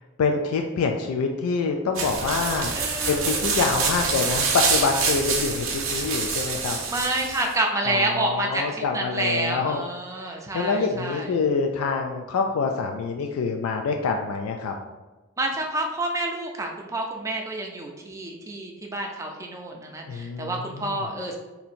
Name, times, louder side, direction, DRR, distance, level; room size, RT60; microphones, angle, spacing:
voice 1, 0.2-2.7 3.1-6.8 7.9-9.9 10.2-14.7 20.1-21.1, left 4 dB, 85° left, 3 dB, 0.3 m, -26 dB
sound 1, 1.9-7.5, right 5 dB, 70° right, 0.7 m, -26 dB
voice 2, 2.7-3.4 6.9-11.3 15.4-21.4, right 2 dB, 15° right, 1 dB, 0.4 m, -29 dB
2.8 x 2.7 x 4.2 m, 1.2 s
head